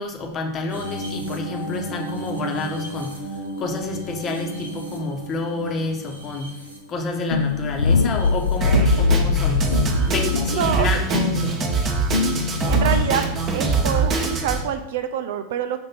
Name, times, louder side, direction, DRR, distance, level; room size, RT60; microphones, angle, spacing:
voice 1, 0.0-3.2 3.6-6.5 6.9-9.6 10.0-11.6, left 3 dB, 30° left, 3 dB, 1.2 m, -29 dB
sound 1, 0.7-9.0 9.6-10.4 11.6-11.9 13.6-13.7, right 1 dB, 80° right, 1.0 m, -35 dB
sound 2, 7.3-13.5, left 4 dB, 70° left, 0.3 m, -23 dB
Drum kit, 8.6-14.6, right 4 dB, 30° right, 1.1 m, -23 dB
voice 2, 10.5-11.2 12.7-13.3 13.5-15.8, right 8 dB, 55° right, 8 dB, 0.5 m, -26 dB
5.8 x 3.5 x 5.7 m, 0.86 s
figure-of-eight pair, 90°, 0 cm